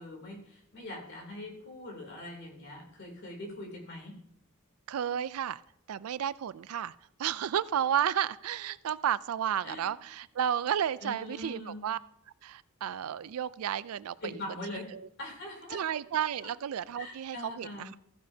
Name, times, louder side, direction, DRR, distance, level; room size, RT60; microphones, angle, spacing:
voice 1, 0.0-4.1 9.6-9.8 11.0-11.8 14.2-14.9 15.2-15.8 16.4-16.5 16.9-17.9, left 1 dB, 55° left, 0 dB, 3.1 m, -42 dB
voice 2, 4.9-5.6 5.9-6.9 7.2-12.0 12.4-14.3 14.7-15.0 15.7-18.0, right 9 dB, 75° right, 18 dB, 0.4 m, -32 dB
15.0 x 9.5 x 2.8 m, 0.73 s
head